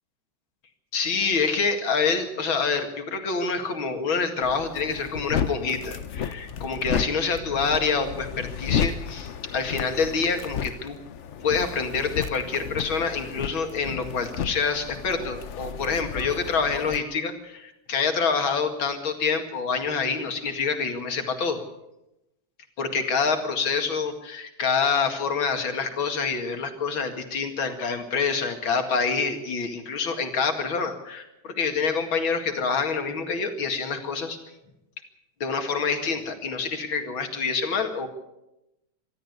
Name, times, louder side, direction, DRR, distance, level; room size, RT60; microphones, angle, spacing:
voice 1, 0.9-11.0 11.4-21.6 22.8-34.4 35.4-38.1, left 5 dB, 85° left, 6 dB, 2.9 m, -26 dB
sound 1, 4.4-17.0, left 7 dB, 55° left, 0.8 m, -33 dB
24.5 x 13.0 x 8.2 m, 0.92 s
omnidirectional pair, 2.1 m